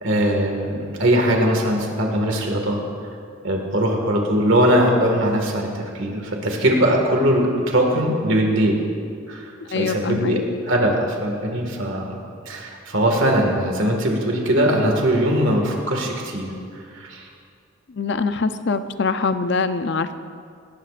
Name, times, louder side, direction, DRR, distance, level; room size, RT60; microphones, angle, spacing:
voice 1, 0.0-2.8 3.4-8.8 9.3-12.2 12.5-16.5 16.9-17.3, equal, 65° right, 1 dB, 1.9 m, -20 dB
voice 2, 9.7-10.4 17.9-20.1, left 4 dB, 55° left, 10 dB, 0.5 m, -23 dB
19.0 x 17.5 x 2.5 m, 2.3 s
head